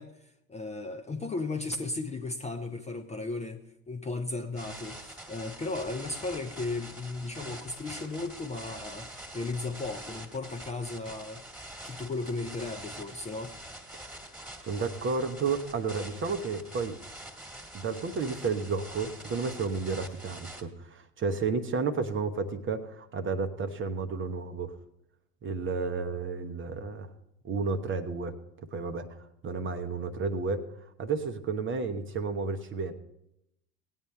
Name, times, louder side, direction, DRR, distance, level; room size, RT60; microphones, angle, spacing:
voice 1, 0.0-13.6, left 3 dB, 15° left, 5 dB, 0.7 m, -36 dB
sound 1, 4.6-20.6, right 1 dB, 5° right, 1.8 m, -45 dB
voice 2, 14.6-17.0 17.7-24.7 25.4-27.1 27.4-28.3 28.7-29.1 29.4-30.7 31.0-32.9, right 4 dB, 25° right, 8 dB, 0.8 m, -32 dB
17.5 x 9.0 x 3.3 m, 0.82 s
figure-of-eight pair, 75°, 48 cm